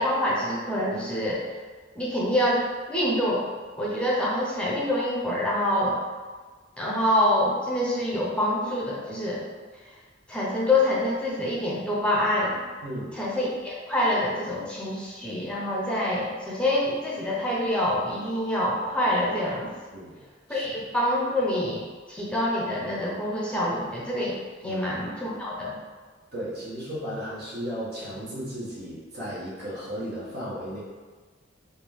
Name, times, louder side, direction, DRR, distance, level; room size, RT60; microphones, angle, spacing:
voice 1, 0.0-1.4 1.9-3.5 3.8-5.9 6.8-9.4 10.3-12.6 13.2-19.7 20.5-21.8 22.1-25.8, left 1 dB, 5° left, -5 dB, 0.8 m, -26 dB
voice 2, 12.8-13.2 19.9-20.7 24.6-24.8 26.3-30.8, equal, 55° right, -7 dB, 1.4 m, -35 dB
4.3 x 2.8 x 3.5 m, 1.4 s
head